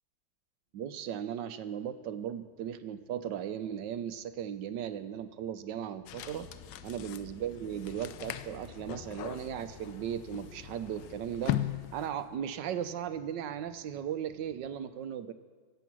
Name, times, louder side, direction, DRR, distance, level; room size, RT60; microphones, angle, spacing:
sound 1, 0.7-14.7, left 1 dB, 30° right, 5.5 m, -63 dB
voice 1, 0.7-6.5 6.8-11.5 11.9-15.3, right 9 dB, 85° right, 11 dB, 1.4 m, -37 dB
sound 2, 6.0-11.3, left 3 dB, 70° left, 3.5 m, -55 dB
sound 3, 6.1-12.3, left 12 dB, 90° left, 1.3 m, -39 dB
23.5 x 8.1 x 6.1 m, 1.5 s
omnidirectional pair, 1.9 m